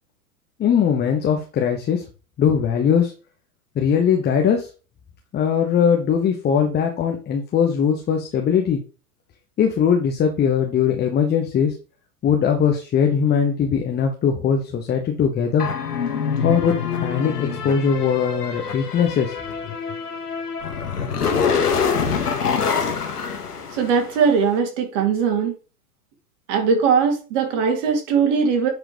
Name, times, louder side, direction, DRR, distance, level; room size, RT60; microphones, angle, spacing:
voice 1, 0.6-2.0 2.4-3.1 3.7-4.7 5.3-8.8 9.6-11.7 12.2-15.7 16.4-19.3 19.6-19.8, left 7 dB, 20° left, 3 dB, 1.2 m, -20 dB
sound 1, 15.6-24.3, left 6 dB, 80° left, 1.6 m, -25 dB
voice 2, 23.7-25.5 26.5-28.7, right 6 dB, 50° right, 3 dB, 2.6 m, -20 dB
10.0 x 5.0 x 3.2 m, 0.34 s
figure-of-eight pair, 95°, 46 cm